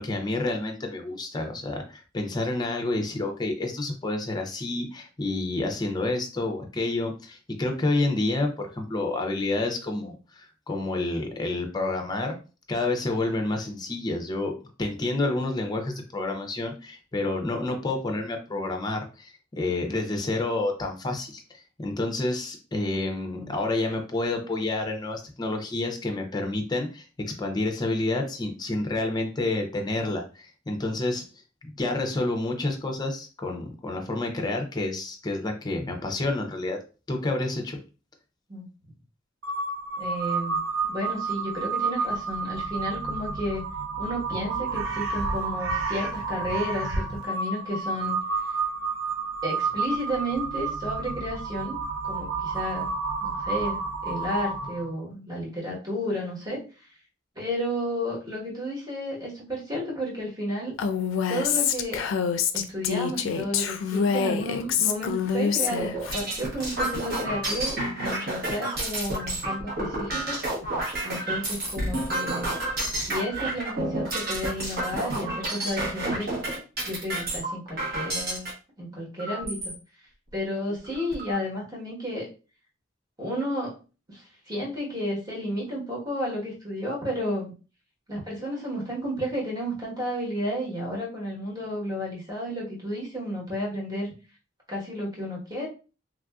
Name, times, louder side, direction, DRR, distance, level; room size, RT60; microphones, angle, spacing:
voice 1, 0.0-12.4 12.7-31.2 31.6-36.8 37.1-37.8, left 2 dB, 20° left, 3 dB, 0.5 m, -29 dB
Crow, 39.4-54.9, right 4 dB, 90° right, 0.5 m, -30 dB
voice 2, 40.0-40.6 40.8-43.6 44.0-48.2 49.4-51.8 52.0-52.9 53.2-56.6 57.3-60.7 61.3-62.1 62.5-70.4 71.0-72.5 73.0-76.3 76.8-78.5 78.8-79.7 80.3-82.3 83.2-83.7 84.1-87.5 88.1-94.1 94.7-95.7, equal, 20° right, -4 dB, 1.2 m, -32 dB
Female speech woman speaking, 60.8-66.2, left 7 dB, 85° left, 0.4 m, -26 dB
sound 1, 65.7-78.5 79.2-79.7 80.3-80.4 80.7-81.3, right 1 dB, 55° right, 1.1 m, -30 dB
3.2 x 2.5 x 2.3 m, 0.34 s
head